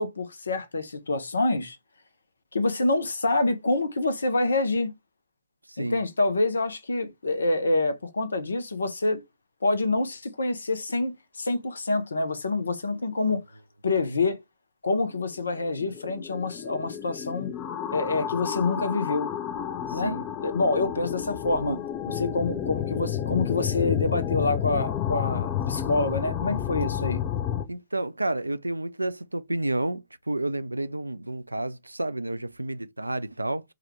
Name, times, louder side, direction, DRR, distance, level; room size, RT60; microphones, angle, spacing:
voice 1, 0.0-1.8 2.5-4.9 5.8-9.2 9.6-13.4 13.8-14.4 14.8-17.5 17.9-19.3 19.9-20.2 20.4-27.2, left 2 dB, 75° left, 0.6 m, -26 dB
voice 2, 5.7-6.0 19.9-20.2 27.7-33.6, right 1 dB, 90° right, 0.3 m, -30 dB
sound 1, 15.8-27.6, left 10 dB, 30° left, 0.5 m, -31 dB
4.7 x 2.2 x 2.9 m
figure-of-eight pair, 115°, 0 cm